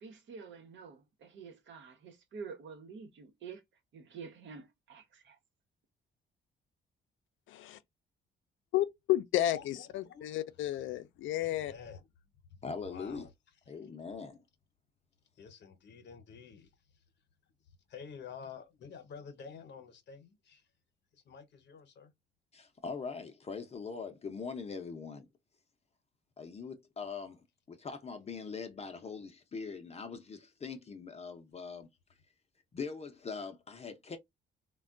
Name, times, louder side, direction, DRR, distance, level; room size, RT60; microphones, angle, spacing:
voice 1, 0.0-3.6 3.9-5.4, right 5 dB, 70° right, 0.9 m, -48 dB
voice 2, 8.7-11.7, left 13 dB, 80° left, 0.4 m, -32 dB
voice 3, 9.5-10.2 11.4-12.1 12.5-12.6 12.9-13.3 15.4-17.0 17.9-20.7 21.1-22.1, left 6 dB, 60° left, 0.9 m, -50 dB
voice 4, 12.6-13.3 13.7-14.4 22.5-25.3 26.4-27.4 27.7-31.9 32.7-34.2, left 5 dB, 30° left, 0.6 m, -42 dB
3.4 x 2.2 x 2.4 m
cardioid pair, 90°, 20 cm